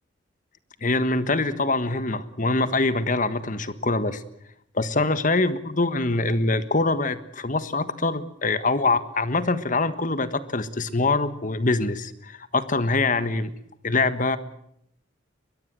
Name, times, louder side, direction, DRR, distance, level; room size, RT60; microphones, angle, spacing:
voice 1, 0.8-4.2 4.7-13.5 13.8-14.4, left 3 dB, 40° left, 13 dB, 1.5 m, -24 dB
22.5 x 21.5 x 7.7 m, 0.74 s
head